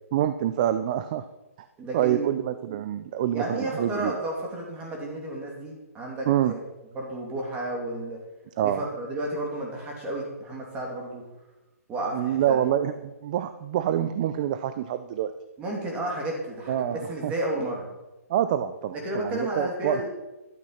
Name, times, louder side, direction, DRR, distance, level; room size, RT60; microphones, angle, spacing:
voice 1, 0.1-1.2 1.9-4.2 6.3-6.5 8.6-8.9 12.1-15.3 16.7-17.3 18.3-20.1, right 11 dB, 30° right, 11 dB, 0.5 m, -26 dB
voice 2, 1.8-2.3 3.3-6.6 6.9-8.2 8.6-11.3 11.9-12.7 15.6-17.9 18.9-20.1, right 1 dB, 15° right, -1 dB, 2.8 m, -32 dB
12.5 x 8.4 x 5.7 m, 1.0 s
hypercardioid pair, 160°, 8 cm